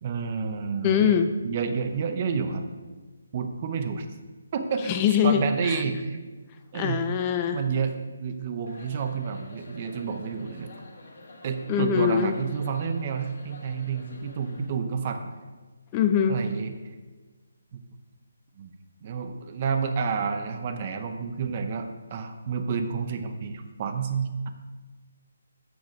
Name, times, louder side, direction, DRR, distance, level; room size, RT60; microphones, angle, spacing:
voice 1, 0.0-1.1 1.4-2.7 3.3-4.1 4.5-4.9 5.2-6.2 6.7-7.0 7.5-10.7 11.4-15.3 16.3-16.7 17.7-17.8 18.6-18.7 19.0-24.5, right 6 dB, 35° right, 7 dB, 0.7 m, -30 dB
voice 2, 0.8-1.3 4.8-5.8 6.7-7.6 11.7-12.4 15.9-16.4, left 8 dB, 20° left, 7 dB, 0.4 m, -23 dB
sound 1, 8.7-14.7, left 1 dB, 60° left, 1.9 m, -47 dB
6.8 x 6.4 x 5.3 m, 1.3 s
hypercardioid pair, 160°, 0 cm